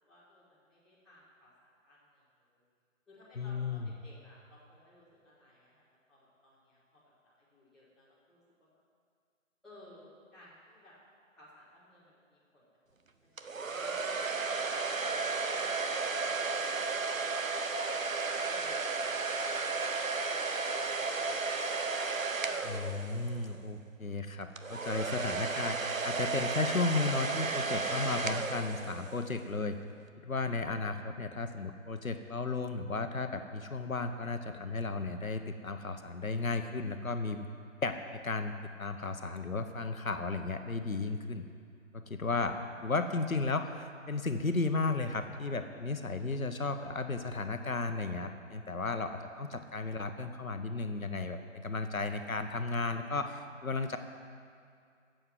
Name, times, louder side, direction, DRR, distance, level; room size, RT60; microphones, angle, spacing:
voice 1, 0.1-2.6 3.1-5.8 6.1-8.4 9.6-11.0 11.3-12.6 13.4-14.6 15.0-15.4 16.5-17.3 18.0-21.7 43.4-43.5, left 1 dB, ahead, -14 dB, 2.3 m, -58 dB
voice 2, 3.4-3.9 22.6-29.8 30.2-37.4 37.8-38.5 38.8-41.5 41.9-42.5 42.8-54.0, left 3 dB, 85° left, 7 dB, 1.2 m, -34 dB
sound 1, 13.4-23.5 24.6-29.3, right 4 dB, 75° right, 1.0 m, -33 dB
12.5 x 7.8 x 7.9 m, 2.3 s
figure-of-eight pair, 155°, 40 cm